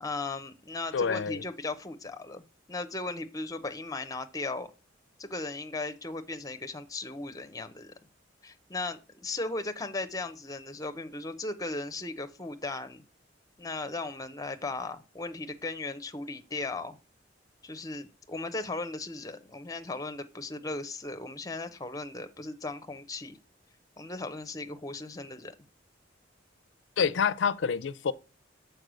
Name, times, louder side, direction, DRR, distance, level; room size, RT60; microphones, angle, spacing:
voice 1, 0.0-2.4 2.7-4.7 5.2-7.9 8.4-13.0 13.6-17.0 17.6-23.4 24.0-25.5, left 3 dB, 20° left, 0.7 m, -37 dB
voice 2, 0.9-1.4 27.0-28.1, left 6 dB, 70° left, 0.4 m, -27 dB
6.6 x 4.6 x 6.1 m
head